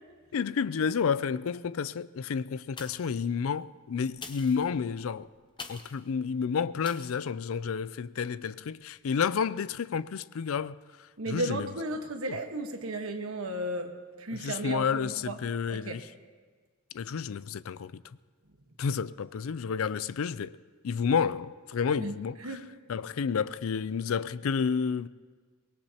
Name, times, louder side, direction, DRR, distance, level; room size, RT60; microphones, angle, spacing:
voice 1, 0.3-5.3 5.7-10.8 11.3-11.7 14.4-16.0 16.9-17.9 18.8-20.6 20.8-22.4 22.9-25.1, left 6 dB, 75° left, 0.4 m, -30 dB
sound 1, 2.7-3.3 4.1-6.0 6.8-7.2 7.7-7.8, left 4 dB, 20° left, 0.7 m, -45 dB
voice 2, 11.2-13.9 14.2-15.4 15.7-16.0 22.0-22.7, right 1 dB, 75° right, 1.4 m, -34 dB
23.5 x 19.0 x 2.9 m
head